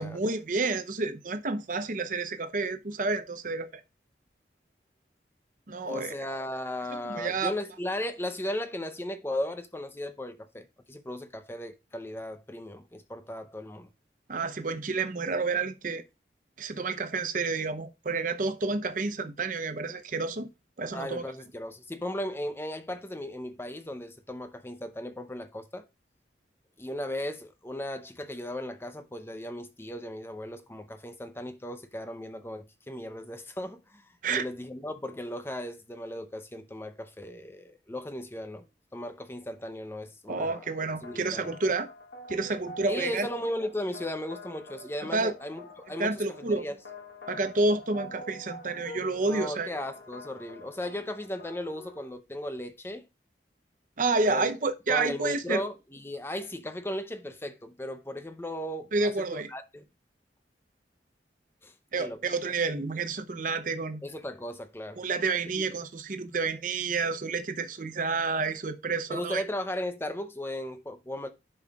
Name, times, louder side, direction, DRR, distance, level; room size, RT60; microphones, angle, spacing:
voice 1, 0.0-3.8 5.7-6.1 7.0-7.5 14.3-16.0 16.6-20.5 20.8-21.2 34.2-34.4 40.3-41.9 42.3-43.3 45.1-45.3 46.0-46.6 47.3-49.7 54.0-55.6 58.9-59.5 61.9-64.0 65.0-69.4, right 3 dB, 45° right, 0.7 m, -29 dB
voice 2, 5.9-13.9 20.9-25.9 26.8-38.6 38.9-40.6 41.0-41.5 42.9-45.6 45.9-46.2 46.5-46.8 49.2-53.0 54.3-54.5 54.9-59.9 61.6-62.2 64.0-65.0 65.5-65.6 69.1-71.3, left 1 dB, 15° left, 0.7 m, -36 dB
sound 1, 40.5-52.1, left 1 dB, 85° left, 1.3 m, -47 dB
11.0 x 5.6 x 2.4 m
head